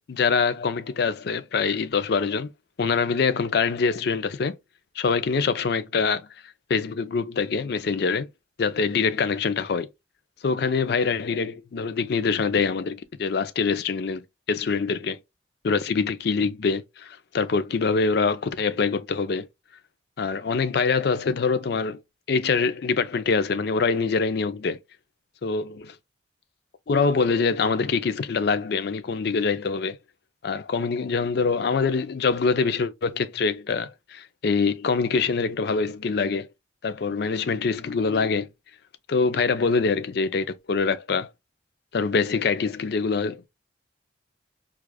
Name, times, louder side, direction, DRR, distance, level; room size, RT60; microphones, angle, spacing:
voice 1, 0.1-2.5 2.8-4.6 5.0-6.3 6.7-8.3 8.6-9.9 10.4-15.2 15.6-19.5 20.2-22.0 22.3-24.8 25.4-25.9 26.9-30.0 30.4-36.5 36.8-38.5 39.1-41.3 41.9-43.4, left 5 dB, 60° left, 0.4 m, -24 dB
4.7 x 2.4 x 2.2 m
head